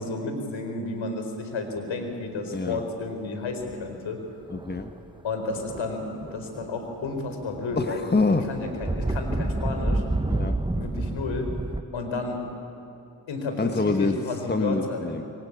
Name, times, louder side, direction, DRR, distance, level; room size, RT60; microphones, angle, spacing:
voice 1, 0.0-4.2 5.2-8.1 8.5-10.0 10.8-11.5 11.9-12.4 13.3-15.3, left 3 dB, 65° left, 5 dB, 4.6 m, -32 dB
sound 1, 3.6-3.9 4.5-5.0 5.5-6.7 7.0-11.8, right 2 dB, 10° right, 1.1 m, -30 dB
voice 2, 4.5-4.9 7.8-8.5 10.3-10.6 13.6-14.2 14.5-15.2, left 3 dB, 20° left, 7 dB, 1.6 m, -25 dB
24.5 x 23.0 x 8.8 m, 2.9 s
hypercardioid pair, 40°, 49 cm